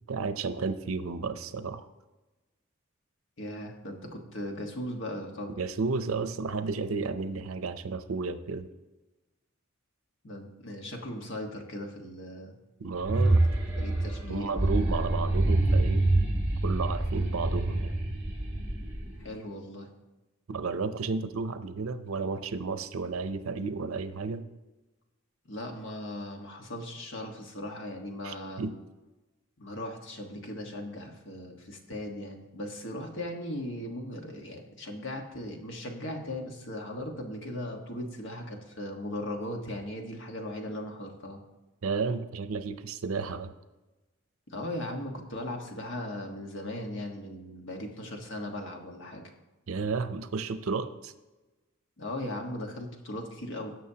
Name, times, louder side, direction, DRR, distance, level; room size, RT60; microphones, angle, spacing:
voice 1, 0.1-1.8 5.6-8.7 12.8-13.4 14.3-16.1 16.6-18.0 20.5-24.4 28.2-28.8 41.8-43.5 49.7-51.1, right 4 dB, 85° right, 11 dB, 0.6 m, -32 dB
voice 2, 3.4-5.6 10.2-12.5 13.8-14.6 19.2-19.9 25.5-28.6 29.6-41.4 44.5-49.3 52.0-53.7, left 1 dB, 65° left, 2 dB, 1.5 m, -38 dB
sound 1, 12.9-19.3, right 2 dB, 10° right, 3.4 m, -26 dB
17.5 x 6.4 x 2.8 m, 1.1 s
head